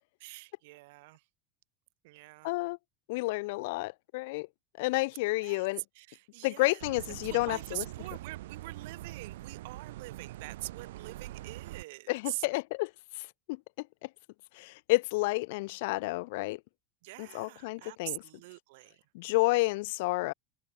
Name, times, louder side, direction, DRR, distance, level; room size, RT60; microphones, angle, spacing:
voice 1, 0.2-1.2 2.0-2.5 5.4-5.7 5.9-6.8 7.1-12.5 17.0-19.0, right 22 dB, 70° right, 4.1 m, -44 dB
voice 2, 2.4-2.8 3.1-4.5 4.8-5.8 6.4-7.8 12.1-13.6 14.0-14.1 14.5-16.6 17.2-18.2 19.1-20.3, left 23 dB, 70° left, 0.5 m, -30 dB
sound 1, 6.8-11.8, right 16 dB, 90° right, 3.0 m, -44 dB
supercardioid pair, 145°, 0 cm